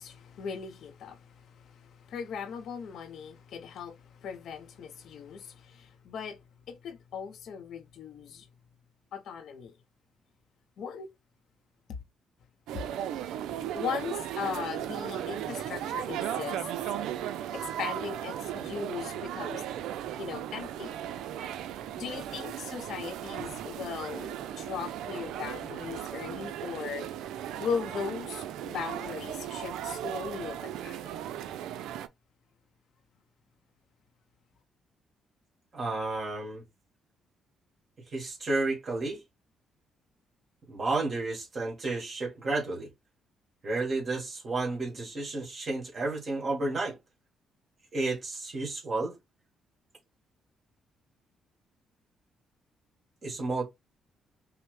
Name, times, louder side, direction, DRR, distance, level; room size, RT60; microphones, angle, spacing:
voice 1, 0.0-6.4 6.7-8.5 9.1-9.8 10.8-11.1 12.7-12.8 13.7-16.7 17.5-19.6 20.2-21.0 22.0-27.1 27.6-31.1, left 6 dB, 70° left, 0.6 m, -38 dB
sound 1, 12.7-32.1, right 11 dB, 85° right, 0.4 m, -36 dB
voice 2, 35.7-36.6 38.1-39.2 40.7-42.9 43.6-47.0 47.9-49.2 53.2-53.6, right 2 dB, 45° right, 1.8 m, -31 dB
5.5 x 2.1 x 3.1 m
cardioid pair, 90°, 0 cm